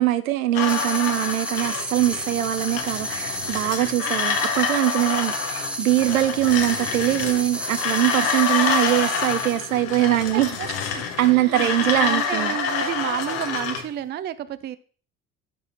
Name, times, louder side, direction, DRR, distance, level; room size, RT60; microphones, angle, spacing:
voice 1, 0.0-10.6 11.2-12.6, right 14 dB, 75° right, 0.7 m, -22 dB
sound 1, 0.5-13.9, left 6 dB, 60° left, 1.1 m, -27 dB
sound 2, 0.6-9.8, right 1 dB, 5° right, 1.0 m, -32 dB
voice 2, 10.3-10.7 11.3-14.8, right 11 dB, 25° right, 0.5 m, -31 dB
11.5 x 4.1 x 4.2 m
figure-of-eight pair, 60°, 42 cm